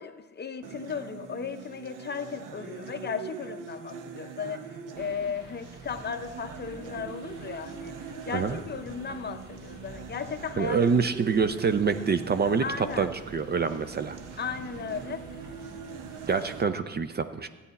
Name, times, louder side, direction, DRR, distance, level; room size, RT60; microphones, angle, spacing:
voice 1, 0.0-4.7 5.0-8.0 8.2-10.9 12.6-13.1 14.4-15.3, left 6 dB, 35° left, 9 dB, 0.6 m, -36 dB
sound 1, 0.6-16.6, right 6 dB, 90° right, 0.8 m, -42 dB
sound 2, 4.9-16.6, right 2 dB, 65° right, 1.8 m, -49 dB
voice 2, 10.6-14.2 16.2-17.5, right 5 dB, 30° right, 11 dB, 0.4 m, -26 dB
13.0 x 9.0 x 4.1 m, 1.2 s
cardioid pair, 100°, 31 cm